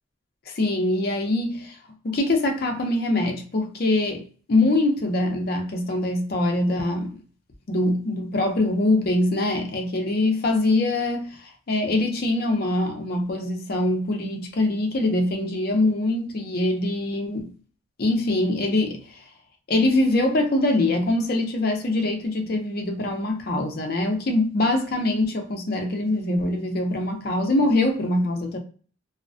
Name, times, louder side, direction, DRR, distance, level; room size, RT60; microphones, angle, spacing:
voice 1, 0.5-1.8 2.0-7.2 7.7-17.5 18.0-19.0 19.7-28.6, left 2 dB, 50° left, 0.5 m, -23 dB
2.4 x 2.1 x 2.5 m
head